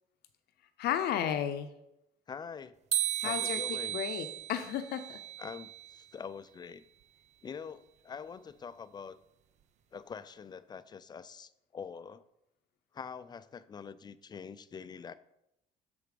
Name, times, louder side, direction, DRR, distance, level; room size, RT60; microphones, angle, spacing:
voice 1, 0.8-1.7 3.2-3.6 3.9-5.2, left 10 dB, 75° left, 9 dB, 0.6 m, -33 dB
voice 2, 2.3-2.8 3.2-4.0 5.4-6.8 7.4-9.2 9.9-12.2 12.9-15.1, left 6 dB, 25° left, 15 dB, 0.4 m, -44 dB
sound 1, 2.9-6.0, right 12 dB, 45° right, 0.4 m, -35 dB
6.9 x 4.9 x 4.9 m, 0.85 s
cardioid pair, 110°, 17 cm